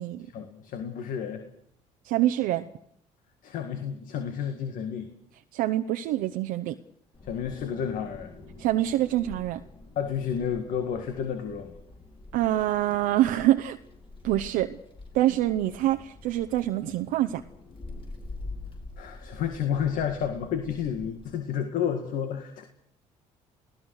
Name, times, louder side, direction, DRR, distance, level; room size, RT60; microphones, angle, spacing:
voice 1, 0.2-1.5 3.4-5.1 7.2-8.3 10.0-11.8 19.0-22.6, left 8 dB, 70° left, 7 dB, 2.0 m, -31 dB
voice 2, 2.0-2.7 5.5-6.8 8.6-9.6 12.3-13.8 14.2-14.8 15.1-17.4, right 14 dB, 85° right, 7 dB, 0.8 m, -25 dB
Wind, 7.1-21.3, left 2 dB, 40° left, 5.9 m, -45 dB
29.0 x 17.5 x 6.5 m, 0.71 s
supercardioid pair, 75°, 14 cm